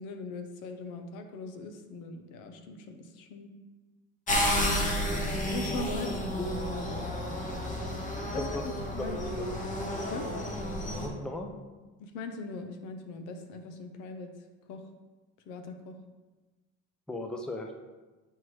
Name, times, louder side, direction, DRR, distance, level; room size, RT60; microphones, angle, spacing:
voice 1, 0.0-3.5 5.4-6.9 8.2-9.2 10.1-10.3 12.0-14.3 14.7-14.8 15.5-16.0, left 3 dB, 75° left, 6 dB, 0.8 m, -40 dB
sound 1, 4.3-11.1, equal, 25° left, 1.0 m, -31 dB
voice 2, 9.0-9.5 11.0-11.5 17.1-17.8, left 2 dB, 5° left, 3 dB, 0.4 m, -36 dB
7.6 x 4.5 x 3.1 m, 1.2 s
cardioid pair, 140°, 32 cm